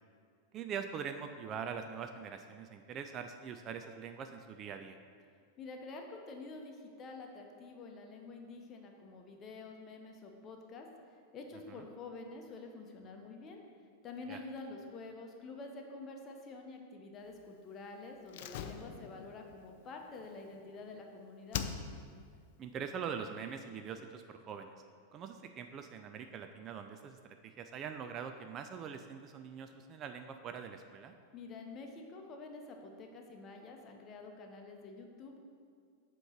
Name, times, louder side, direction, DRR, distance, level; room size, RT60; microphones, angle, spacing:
voice 1, 0.5-5.0 11.7-11.9 14.3-14.4 22.6-24.7 25.1-31.1, right 7 dB, 30° right, 7 dB, 0.3 m, -43 dB
voice 2, 5.6-10.9 11.3-13.6 14.0-21.6 31.3-35.4, left 3 dB, 30° left, 2 dB, 0.8 m, -48 dB
Slam, 18.3-21.0 21.5-22.3 22.5-22.6, left 8 dB, 50° left, 0.3 m, -42 dB
7.7 x 3.0 x 5.7 m, 2.2 s
figure-of-eight pair, 90°, 0 cm